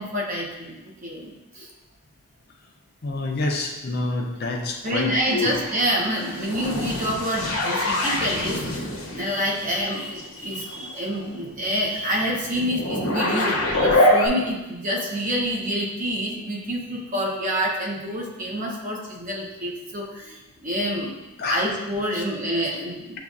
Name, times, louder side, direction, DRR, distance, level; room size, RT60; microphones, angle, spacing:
voice 1, 0.0-1.7 4.8-8.9 9.1-21.1 21.5-23.2, equal, 35° right, -3 dB, 0.8 m, -27 dB
voice 2, 3.0-5.5 21.4-21.7 22.1-22.2, left 2 dB, 45° left, 1 dB, 0.5 m, -27 dB
sound 1, 5.1-14.3, left 1 dB, 70° left, 0.8 m, -25 dB
6.7 x 2.4 x 2.5 m, 1.0 s
head